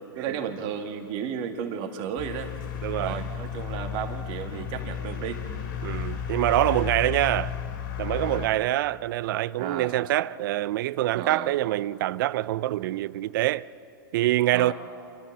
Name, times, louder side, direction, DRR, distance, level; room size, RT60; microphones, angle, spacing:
voice 1, 0.2-2.5 3.0-5.4 8.1-8.5 9.6-9.9 11.1-11.5 14.5-14.7, right 8 dB, 45° right, 1.9 m, -33 dB
sound 1, 2.2-8.5, left 8 dB, 65° left, 2.8 m, -33 dB
voice 2, 2.8-3.2 5.8-7.5 8.0-13.7 14.1-14.7, right 15 dB, 60° right, 0.5 m, -25 dB
27.5 x 13.0 x 7.4 m
hypercardioid pair, 120°, 12 cm